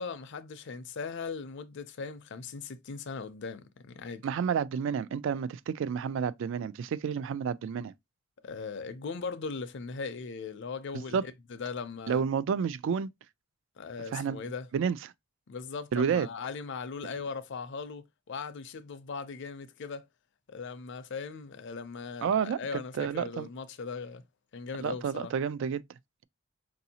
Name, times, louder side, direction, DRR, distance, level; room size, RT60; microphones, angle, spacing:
voice 1, 0.0-4.3 8.4-12.2 13.8-14.7 15.5-20.1 20.5-24.2 24.5-25.3, left 5 dB, 60° left, 0.5 m, -39 dB
voice 2, 4.2-7.9 11.1-11.2 12.1-13.1 14.1-14.4 14.7-15.1 15.9-16.3 22.2-23.5 24.8-25.8, right 7 dB, 65° right, 0.3 m, -30 dB
4.7 x 2.6 x 2.7 m
head